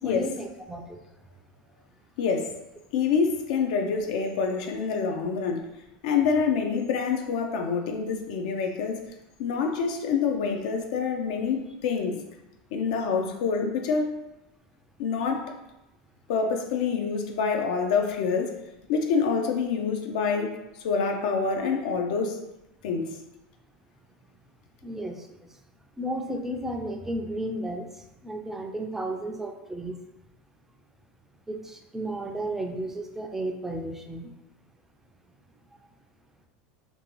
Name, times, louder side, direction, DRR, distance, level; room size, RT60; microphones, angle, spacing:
voice 1, 0.0-1.0 24.8-25.2 26.0-27.9 28.2-30.0 31.5-34.3, right 1 dB, 10° right, 3 dB, 0.3 m, -33 dB
voice 2, 2.2-2.6 2.9-5.7 6.0-9.1 9.4-12.2 12.7-14.2 15.0-15.6 16.3-18.6 18.9-22.4 22.8-23.2, left 5 dB, 75° left, 4 dB, 0.4 m, -26 dB
2.6 x 2.2 x 3.0 m, 0.93 s
supercardioid pair, 115°, 4 cm